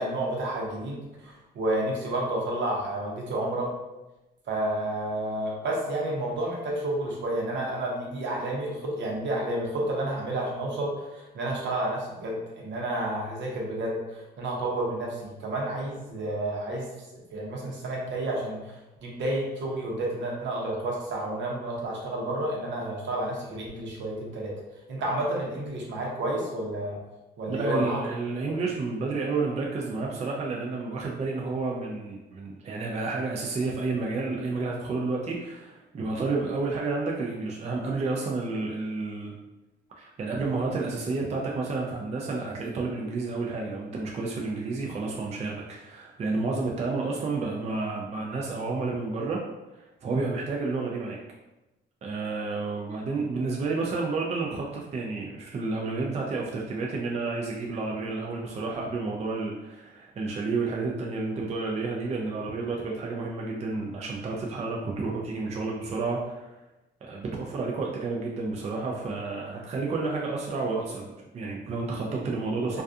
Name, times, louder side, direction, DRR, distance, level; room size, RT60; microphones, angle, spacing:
voice 1, 0.0-3.7 4.5-16.9 17.3-24.6 24.9-27.0 27.4-28.0 72.7-72.8, right 1 dB, 65° right, -2 dB, 0.8 m, -30 dB
voice 2, 27.5-39.3 40.0-49.4 49.7-51.2 52.0-66.6 67.0-72.8, right 3 dB, 35° right, -2 dB, 0.4 m, -30 dB
2.3 x 2.3 x 2.6 m, 1.0 s
cardioid pair, 90°, 20 cm